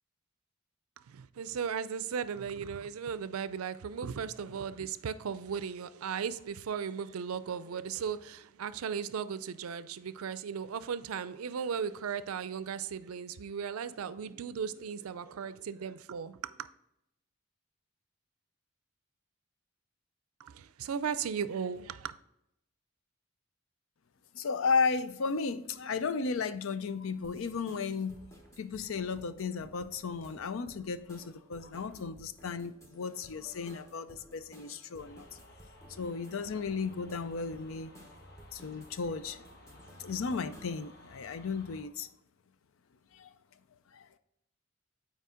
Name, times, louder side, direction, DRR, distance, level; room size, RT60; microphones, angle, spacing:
voice 1, 1.1-16.7 20.4-22.1, right 7 dB, 90° right, 0.4 m, -36 dB
voice 2, 24.3-28.3 28.6-35.3 35.9-37.9 38.5-39.4 40.0-42.1 43.1-43.3 43.9-44.1, left 5 dB, 75° left, 0.5 m, -34 dB
sound 1, 27.2-41.0, equal, 15° left, 1.0 m, -56 dB
sound 2, 35.0-41.8, equal, 50° left, 1.0 m, -56 dB
8.3 x 4.6 x 3.7 m
head